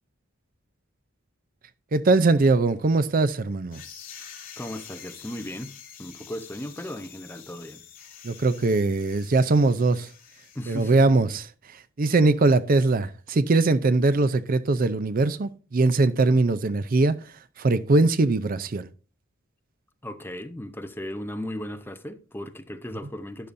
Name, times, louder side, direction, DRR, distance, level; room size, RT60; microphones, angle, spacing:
voice 1, 1.9-3.8 8.2-10.1 10.7-11.4 11.7-17.2 17.6-18.9, right 3 dB, 45° right, 0.5 m, -21 dB
sound 1, 3.7-10.9, left 8 dB, 45° left, 2.5 m, -47 dB
voice 2, 4.6-5.7 6.0-7.8 10.5-11.0 20.0-23.5, left 1 dB, 10° left, 0.8 m, -36 dB
12.0 x 9.9 x 2.6 m
head